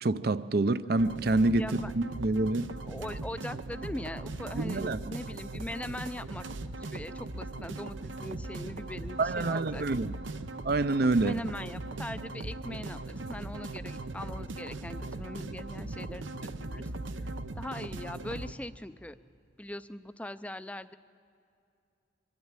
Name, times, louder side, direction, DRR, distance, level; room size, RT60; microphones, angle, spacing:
voice 1, 0.0-1.7 2.0-2.7 4.5-5.0 9.2-10.1 10.6-11.4, right 2 dB, 55° right, 14 dB, 0.5 m, -27 dB
sound 1, 1.0-18.5, right 2 dB, 85° right, 0.8 m, -39 dB
voice 2, 1.6-1.9 2.9-10.1 11.2-16.9 17.2-19.2 19.6-20.9, left 1 dB, 5° left, 12 dB, 0.4 m, -41 dB
24.5 x 13.0 x 8.9 m, 2.6 s
head